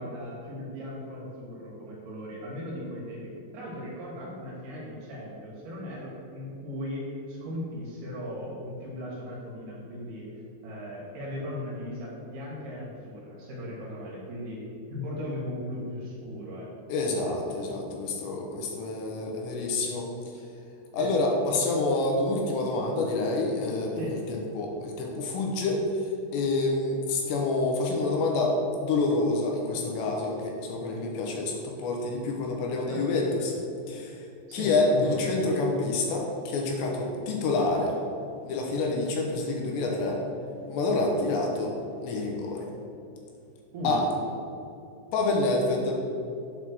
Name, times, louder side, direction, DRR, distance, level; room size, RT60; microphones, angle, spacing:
voice 1, 0.0-3.2 3.5-10.3 10.6-16.7 21.0-21.2 23.9-24.3 32.9-33.0 34.5-35.3 41.0-41.1 43.7-44.1, left 1 dB, 65° right, -5 dB, 3.4 m, -37 dB
voice 2, 16.9-20.1 20.9-23.9 24.3-25.8 26.3-33.6 33.9-34.1 34.5-38.0 38.4-40.2 40.7-42.7 43.8-44.0 45.1-46.0, left 2 dB, 75° left, 0 dB, 3.0 m, -27 dB
8.3 x 4.3 x 6.1 m, 2.6 s
omnidirectional pair, 5.2 m